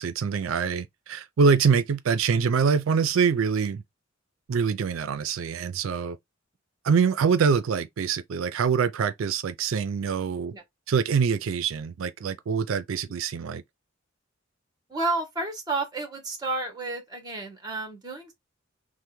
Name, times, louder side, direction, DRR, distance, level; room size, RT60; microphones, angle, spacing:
voice 1, 0.0-3.8 4.5-6.2 6.8-10.5 10.9-13.6, right 6 dB, 75° right, 0.4 m, -24 dB
voice 2, 14.9-18.3, right 3 dB, 20° right, 1.0 m, -31 dB
3.3 x 2.1 x 3.0 m
head